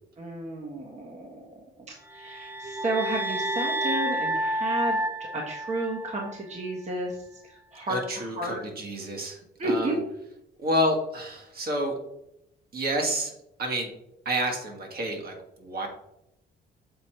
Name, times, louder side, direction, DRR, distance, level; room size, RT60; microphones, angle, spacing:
voice 1, 0.2-1.4 1.9-8.6 9.6-9.9, right 1 dB, 35° right, -1 dB, 1.3 m, -32 dB
sound 1, 2.1-6.4, right 1 dB, 10° right, 0.7 m, -30 dB
voice 2, 7.9-10.0 10.6-12.0 12.7-13.9 14.2-15.9, equal, 50° right, 2 dB, 1.7 m, -29 dB
6.9 x 4.1 x 4.4 m, 0.83 s
cardioid pair, 90°, 20 cm